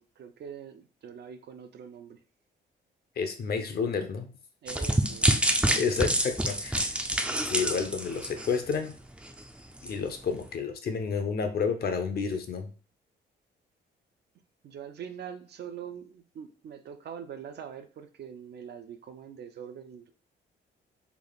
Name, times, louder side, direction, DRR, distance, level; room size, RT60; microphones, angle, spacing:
voice 1, 0.0-2.2 4.6-5.7 14.6-20.1, right 8 dB, 55° right, 0.5 m, -43 dB
voice 2, 3.2-4.3 5.7-7.0 7.4-8.9 9.8-12.7, left 5 dB, 50° left, 0.7 m, -30 dB
sound 1, 4.7-8.9 9.3-9.4 9.9-10.0, right 1 dB, 5° right, 0.4 m, -27 dB
3.4 x 2.4 x 3.9 m
cardioid pair, 90°, 20 cm